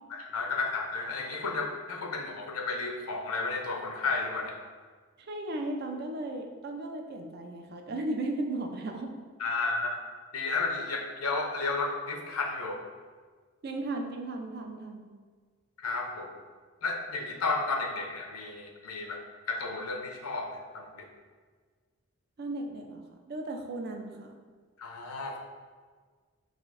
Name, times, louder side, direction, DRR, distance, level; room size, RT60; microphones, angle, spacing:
voice 1, 0.2-4.5 9.4-10.0 10.3-12.8 15.8-16.3 16.8-19.2 19.5-21.1 24.8-25.4, left 3 dB, 85° left, 2 dB, 0.6 m, -32 dB
voice 2, 5.2-9.1 13.6-15.1 22.4-24.4, right 2 dB, 45° right, 3 dB, 0.4 m, -36 dB
4.9 x 2.4 x 3.6 m, 1.5 s
head